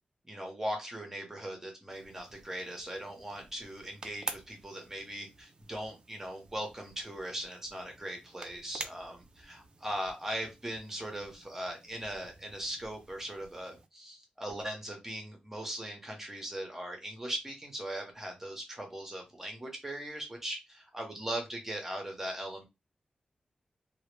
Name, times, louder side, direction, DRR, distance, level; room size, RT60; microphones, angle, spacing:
voice 1, 0.3-22.6, right 1 dB, 15° right, 2 dB, 0.7 m, -39 dB
sound 1, 1.9-13.9, right 3 dB, 35° right, 0.3 m, -49 dB
2.1 x 2.0 x 3.1 m, 0.23 s
wide cardioid pair, 125°, 3 cm